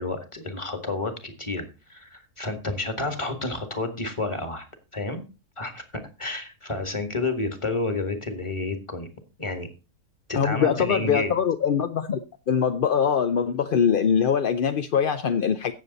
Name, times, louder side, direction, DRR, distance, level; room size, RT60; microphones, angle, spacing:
voice 1, 0.0-4.7 4.9-5.2 5.6-5.8 6.2-9.1 9.4-9.7 10.3-11.3, left 2 dB, 20° left, 1.9 m, -30 dB
voice 2, 10.3-12.2 12.5-15.7, left 7 dB, 55° left, 0.6 m, -23 dB
16.0 x 7.1 x 4.1 m
omnidirectional pair, 1.6 m